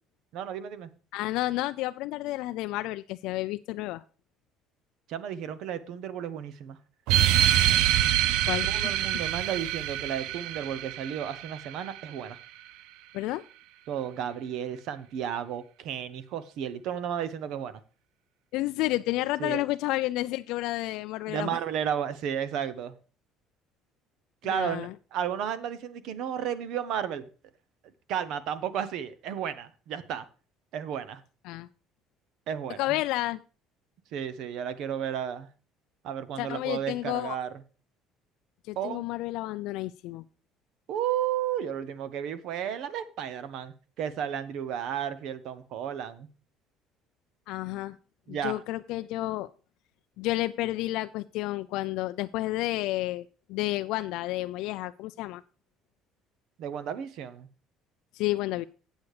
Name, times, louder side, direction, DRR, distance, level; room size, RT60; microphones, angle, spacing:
voice 1, 0.3-0.9 5.1-6.8 8.7-12.4 13.9-17.8 19.4-19.6 21.3-22.9 24.4-27.3 28.1-30.3 30.7-31.2 32.5-33.0 34.1-35.5 36.0-37.6 38.8-39.1 40.9-46.3 48.3-48.6 56.6-57.5, right 9 dB, 65° right, 0.9 m, -33 dB
voice 2, 1.1-4.0 8.5-9.1 13.1-13.4 18.5-21.6 24.4-24.9 31.4-31.7 32.8-33.4 36.4-37.4 38.7-40.2 47.5-48.0 48.3-49.5 50.2-55.4 58.1-58.6, left 17 dB, 75° left, 0.4 m, -31 dB
sound 1, 7.1-12.1, right 12 dB, 80° right, 0.4 m, -25 dB
8.4 x 8.2 x 4.8 m
cardioid pair, 145°, 0 cm